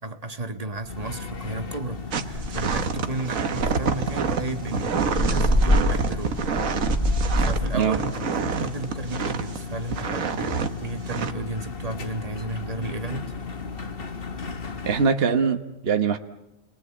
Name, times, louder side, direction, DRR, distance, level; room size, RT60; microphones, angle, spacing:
voice 1, 0.0-6.4 7.4-10.5 10.8-13.3, right 2 dB, 30° right, 7 dB, 1.6 m, -33 dB
sound 1, 0.9-15.1, left 4 dB, 45° left, 1.5 m, -36 dB
sound 2, 0.9-1.0 1.3-1.6 1.9-2.0 2.3-3.0 3.5-7.7, equal, 20° left, 2.8 m, -25 dB
sound 3, 2.1-9.6 9.9-10.7 11.1-11.3, right 6 dB, 85° right, 1.7 m, -27 dB
voice 2, 14.8-16.2, right 6 dB, 50° right, 6 dB, 1.4 m, -22 dB
29.0 x 21.5 x 8.6 m, 0.92 s
omnidirectional pair, 1.4 m